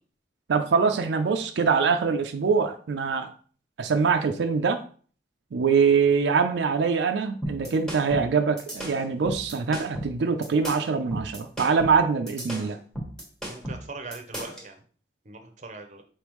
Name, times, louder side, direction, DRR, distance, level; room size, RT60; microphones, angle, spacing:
voice 1, 0.5-3.3 3.8-4.8 5.5-12.8, right 5 dB, 85° right, 6 dB, 0.4 m, -23 dB
sound 1, 7.4-14.7, right 1 dB, 5° left, 1.0 m, -35 dB
voice 2, 13.5-14.8 15.2-16.0, right 3 dB, 40° right, 6 dB, 0.6 m, -41 dB
4.6 x 3.5 x 3.0 m, 0.43 s
head